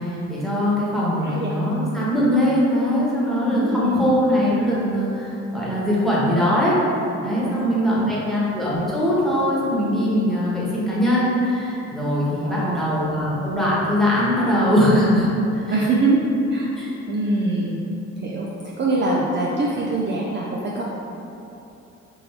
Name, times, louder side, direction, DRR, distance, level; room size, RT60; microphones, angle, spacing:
voice 1, 0.0-6.8 7.2-15.7 16.8-16.9, equal, ahead, -8 dB, 1.2 m, -21 dB
voice 2, 1.2-1.6 3.5-4.1 7.4-8.3 12.4-12.9 15.7-16.8 17.1-17.8 18.2-20.8, right 2 dB, 40° right, -4 dB, 0.5 m, -24 dB
3.8 x 2.6 x 4.2 m, 2.9 s
cardioid pair, 90°, 30 cm